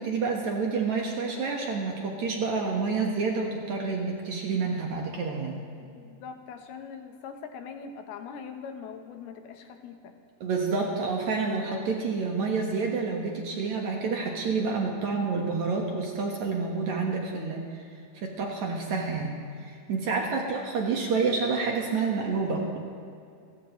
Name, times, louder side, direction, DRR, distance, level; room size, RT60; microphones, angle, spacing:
voice 1, 0.0-5.6 10.4-17.8 18.1-22.8, right 4 dB, 60° right, 0 dB, 2.3 m, -29 dB
voice 2, 5.8-10.1 19.9-20.4, left 6 dB, 80° left, 5 dB, 3.0 m, -42 dB
30.0 x 14.5 x 3.1 m, 2.4 s
omnidirectional pair, 4.5 m